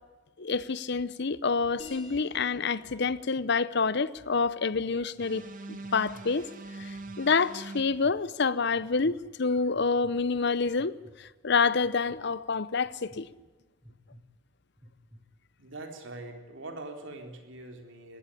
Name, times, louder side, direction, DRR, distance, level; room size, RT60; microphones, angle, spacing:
voice 1, 0.4-6.5 6.8-6.9 7.2-13.3, left 4 dB, 60° left, 0.8 m, -28 dB
sound 1, 1.8-6.9, left 3 dB, 30° left, 5.0 m, -53 dB
sound 2, 4.2-4.3 4.8-5.3 5.8-6.3 6.8-7.2 7.7-8.2 8.7-9.2 9.7-10.1 10.8-11.2 11.8-12.2 12.8-13.2 13.8-14.2 14.8-15.2, equal, 15° right, 4.9 m, -53 dB
sound 3, 5.2-7.8, right 3 dB, 40° right, 2.1 m, -42 dB
voice 2, 15.6-18.2, right 2 dB, 65° right, 3.9 m, -43 dB
20.5 x 16.5 x 10.0 m
head